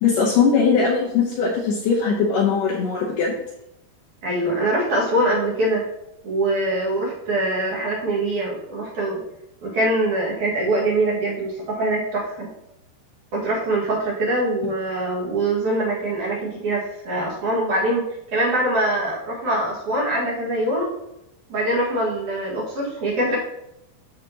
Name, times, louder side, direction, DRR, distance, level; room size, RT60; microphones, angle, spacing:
voice 1, 0.0-3.4, left 5 dB, 70° left, -2 dB, 2.2 m, -20 dB
voice 2, 4.2-5.8 6.2-9.2 9.6-12.5 13.3-18.1 18.3-20.9 21.5-23.4, right 1 dB, 55° right, -4 dB, 2.9 m, -23 dB
14.0 x 5.1 x 2.9 m, 0.84 s
omnidirectional pair, 4.7 m